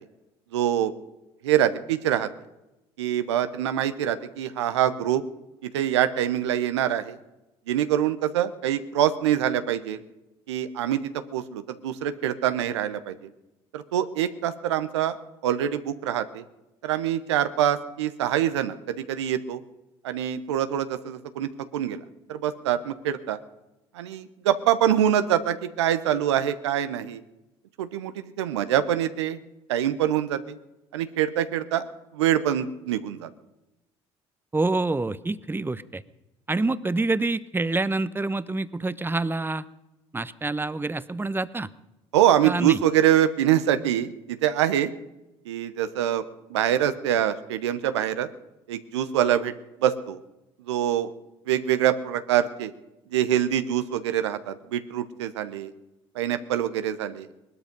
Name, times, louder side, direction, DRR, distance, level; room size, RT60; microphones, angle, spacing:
voice 1, 0.5-0.9 1.4-2.3 3.0-5.2 5.6-7.2 7.7-10.0 10.5-13.3 13.7-15.2 15.4-16.4 16.8-19.6 20.0-22.0 22.3-23.4 23.9-27.2 27.8-29.4 29.7-30.6 30.9-31.8 32.1-33.3 42.1-44.9 45.5-46.2 46.5-48.3 48.7-49.5 49.8-50.2 50.7-51.1 51.5-52.7 53.1-55.7 56.1-57.3, right 11 dB, 85° right, 11 dB, 0.9 m, -25 dB
voice 2, 34.5-36.0 36.5-39.7 40.1-41.7 42.4-42.8, right 3 dB, 15° right, 15 dB, 0.9 m, -27 dB
20.0 x 12.5 x 5.3 m, 0.97 s
hypercardioid pair, 60°, 14 cm